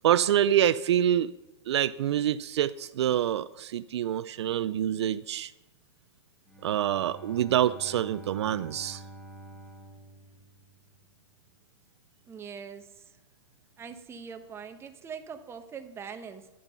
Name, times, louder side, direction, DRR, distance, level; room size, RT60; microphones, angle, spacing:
voice 1, 0.0-1.3 1.7-5.5 6.6-9.0, right 11 dB, 70° right, 15 dB, 0.4 m, -26 dB
Bowed string instrument, 6.5-11.3, right 1 dB, 5° left, 1.7 m, -48 dB
voice 2, 12.2-13.2 13.8-16.5, right 6 dB, 15° right, 7 dB, 1.0 m, -42 dB
11.0 x 8.9 x 5.7 m, 1.0 s
hypercardioid pair, 125°, 15 cm